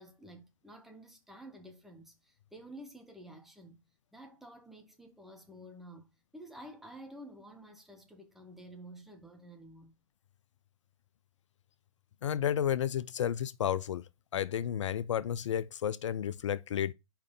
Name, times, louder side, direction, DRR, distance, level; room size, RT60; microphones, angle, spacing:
voice 1, 0.0-3.8 4.1-6.1 6.3-9.9, right 1 dB, ahead, 1.2 m, -51 dB
voice 2, 12.2-14.0 14.3-16.9, left 9 dB, 60° left, 0.4 m, -32 dB
4.8 x 4.4 x 5.3 m
hypercardioid pair, 125°, 17 cm